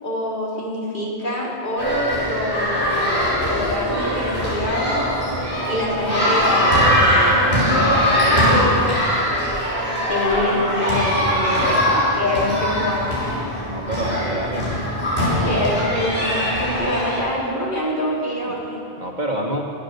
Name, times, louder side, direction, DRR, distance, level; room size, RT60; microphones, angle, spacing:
voice 1, 0.0-5.0 5.7-7.5 10.1-13.1 15.2-18.8, left 1 dB, 50° left, -5 dB, 3.8 m, -25 dB
sound 1, 1.8-17.2, equal, 80° left, 5.2 m, -21 dB
voice 2, 8.2-8.7 13.7-14.7 18.5-18.6 19.0-19.6, right 1 dB, 45° right, 0 dB, 1.7 m, -27 dB
24.0 x 8.6 x 6.8 m, 2.9 s
omnidirectional pair, 1.1 m